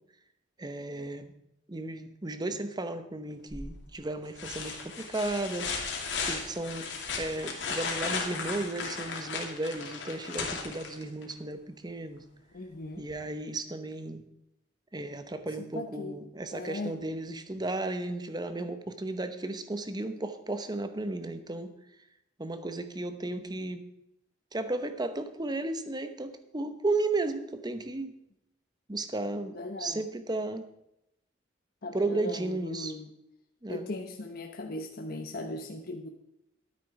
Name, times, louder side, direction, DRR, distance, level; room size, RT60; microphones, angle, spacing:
voice 1, 0.6-1.3 1.7-5.7 6.2-6.9 7.2-12.2 13.0-14.2 14.9-21.7 22.4-23.9 24.5-28.1 28.9-30.7 31.9-32.9 33.6-33.9, right 2 dB, 20° right, 10 dB, 0.9 m, -34 dB
sound 1, 3.5-3.9 4.4-11.3 13.1-13.2, left 4 dB, 75° left, 2.6 m, -35 dB
voice 2, 12.5-13.0 15.6-16.2 16.5-17.0 29.5-30.0 31.8-33.1 33.7-36.1, left 2 dB, 55° left, 4 dB, 0.9 m, -38 dB
12.0 x 9.6 x 4.8 m, 0.83 s
head